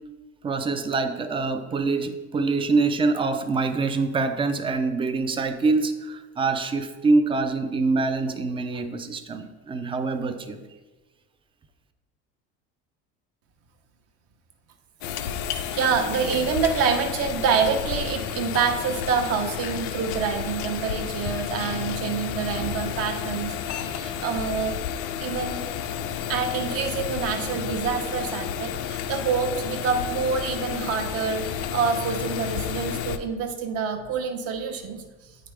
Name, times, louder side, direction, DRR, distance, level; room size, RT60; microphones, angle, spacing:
voice 1, 0.4-10.6, right 3 dB, 15° right, 8 dB, 0.4 m, -25 dB
sound 1, 15.0-33.2, left 9 dB, 90° left, 0.6 m, -31 dB
voice 2, 15.7-24.8 25.2-25.6 26.3-35.0, right 6 dB, 50° right, 5 dB, 0.9 m, -27 dB
8.7 x 5.0 x 3.3 m, 1.2 s
cardioid pair, 145°, 31 cm